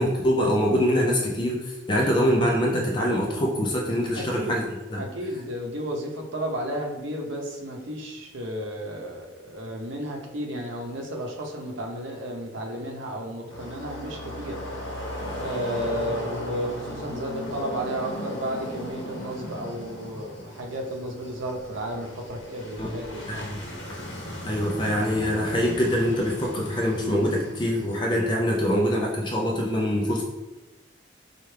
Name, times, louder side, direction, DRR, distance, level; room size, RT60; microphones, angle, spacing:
voice 1, 0.0-4.6 4.9-5.0 22.8-22.9 23.3-23.4 24.4-30.2, equal, 25° left, -2 dB, 0.4 m, -24 dB
voice 2, 4.1-4.7 4.9-14.7 15.4-23.4, equal, 80° right, 1 dB, 0.7 m, -33 dB
sound 1, 13.5-27.9, equal, 80° left, 0.9 m, -36 dB
4.4 x 2.4 x 3.2 m, 1.1 s
head